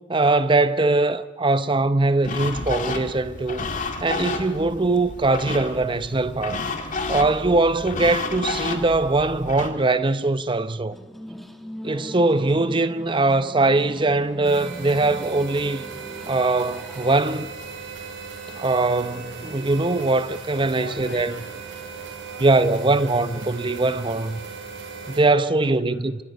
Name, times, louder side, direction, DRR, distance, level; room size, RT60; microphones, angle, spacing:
voice 1, 0.1-3.7 4.0-6.6 7.1-11.0 11.8-15.9 16.3-17.5 18.5-21.3 22.4-24.4 25.1-26.2, right 2 dB, 25° right, 0.7 m, -21 dB
sound 1, 2.2-9.7, left 3 dB, 40° left, 2.0 m, -31 dB
sound 2, 10.9-17.2, equal, ahead, 1.3 m, -40 dB
sound 3, 14.4-25.2, right 5 dB, 70° right, 5.8 m, -37 dB
voice 2, 20.7-23.1 25.0-26.2, left 2 dB, 75° left, 4.6 m, -44 dB
26.5 x 24.5 x 5.4 m
head